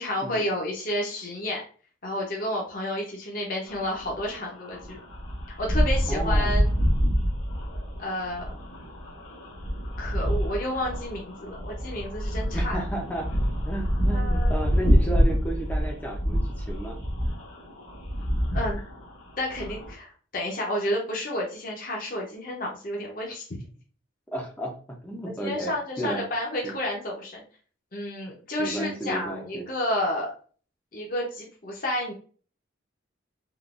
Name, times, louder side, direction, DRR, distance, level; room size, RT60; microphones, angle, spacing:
voice 1, 0.0-1.6 2.0-5.0 5.6-6.7 8.0-8.6 10.0-12.8 14.1-14.5 18.5-18.8 19.4-23.5 25.4-27.4 27.9-30.3 30.9-32.1, left 1 dB, 45° left, -2 dB, 0.8 m, -31 dB
sound 1, 3.7-19.9, equal, 85° left, 1.2 m, -27 dB
voice 2, 6.1-6.6 12.5-13.3 13.6-17.0 24.3-25.7 26.0-26.2 26.6-26.7 28.6-29.6, right 1 dB, 10° left, 0 dB, 0.6 m, -33 dB
3.8 x 2.5 x 2.4 m, 0.41 s
head